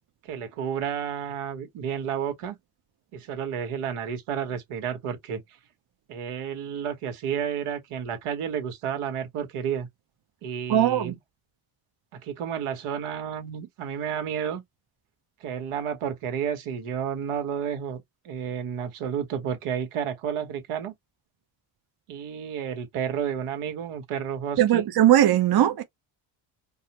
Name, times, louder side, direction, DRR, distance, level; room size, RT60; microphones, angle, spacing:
voice 1, 0.2-2.6 3.1-5.4 6.1-9.9 10.4-11.1 12.2-14.6 15.4-20.9 22.1-24.9, right 8 dB, 85° right, 1.5 m, -31 dB
voice 2, 10.7-11.1 24.6-25.8, right 12 dB, 50° right, 0.7 m, -19 dB
4.7 x 2.1 x 2.9 m
cardioid pair, 90°, 49 cm